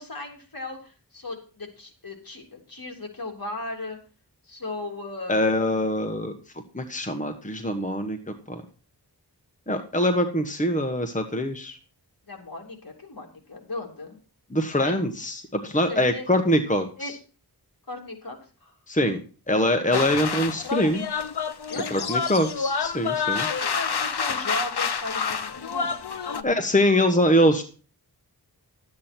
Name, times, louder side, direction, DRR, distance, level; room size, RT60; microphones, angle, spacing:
voice 1, 0.0-4.0 4.4-5.5 12.3-14.2 14.8-15.1 15.7-16.3 17.0-17.1 17.9-18.7 21.7-22.1 23.2-26.5, left 2 dB, 55° left, 1 dB, 3.2 m, -37 dB
voice 2, 5.3-6.3 6.7-8.2 8.5-8.6 9.7-11.8 14.5-17.1 18.9-19.2 19.5-21.1 21.9-23.5 26.4-27.6, equal, 20° left, 5 dB, 1.3 m, -23 dB
Village Game Song - Pulau Seram Indonesia, 19.9-26.4, left 6 dB, 70° left, 0.8 m, -28 dB
12.0 x 8.6 x 4.4 m, 0.37 s
wide cardioid pair, 55°, 40 cm